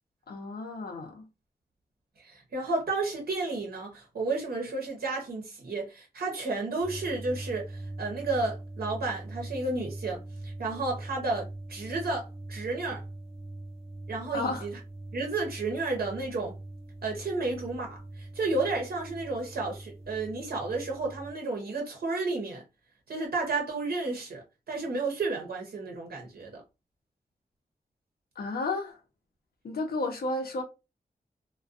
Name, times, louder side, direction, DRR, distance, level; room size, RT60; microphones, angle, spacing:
voice 1, 0.3-1.3 14.3-14.7 28.4-29.0 29.6-30.6, left 2 dB, 85° left, 0.6 m, -32 dB
voice 2, 2.2-13.0 14.1-14.8 15.1-16.6 17.0-22.6 23.1-26.6, right 3 dB, 85° right, 0.7 m, -32 dB
sound 1, 6.8-21.3, right 2 dB, 40° right, 0.6 m, -42 dB
2.4 x 2.2 x 2.4 m
wide cardioid pair, 75°, 15 cm